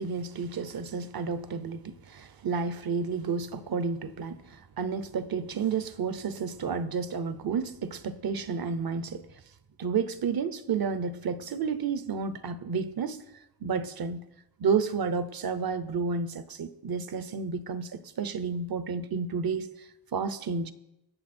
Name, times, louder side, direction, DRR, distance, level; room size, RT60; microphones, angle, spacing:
voice 1, 0.0-9.3 9.8-13.2 13.6-14.2 14.6-20.7, right 5 dB, 55° right, 0.9 m, -31 dB
21.5 x 8.3 x 4.4 m
wide cardioid pair, 155°, 44 cm